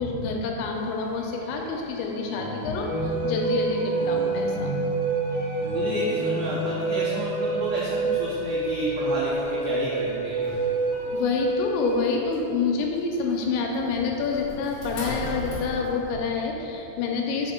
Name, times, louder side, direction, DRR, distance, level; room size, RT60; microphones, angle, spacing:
voice 1, 0.0-4.7 11.1-17.5, left 4 dB, 80° left, 1 dB, 2.9 m, -28 dB
sound 1, 0.7-16.1, equal, 60° left, 1.9 m, -43 dB
sound 2, 2.2-8.9 10.4-11.1, left 1 dB, 70° right, 1.5 m, -35 dB
Wind instrument woodwind instrument, 2.8-12.1, right 3 dB, 55° right, 2.3 m, -28 dB
voice 2, 5.7-10.4, right 2 dB, 90° right, -6 dB, 2.0 m, -30 dB
6.4 x 5.2 x 4.3 m, 2.9 s
omnidirectional pair, 5.4 m